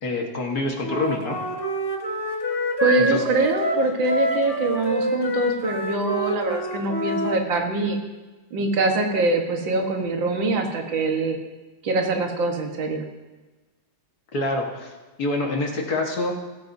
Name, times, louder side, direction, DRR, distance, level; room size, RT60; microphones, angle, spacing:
voice 1, 0.0-1.4 3.0-3.2 14.3-14.9 15.2-16.4, left 2 dB, 55° left, 0 dB, 1.9 m, -26 dB
Wind instrument woodwind instrument, 0.8-7.4, left 1 dB, 15° left, 1.2 m, -27 dB
voice 2, 2.8-8.0 8.5-11.4 11.8-13.1, right 3 dB, 80° right, 3 dB, 2.1 m, -24 dB
16.5 x 14.0 x 2.7 m, 1.2 s
omnidirectional pair, 2.0 m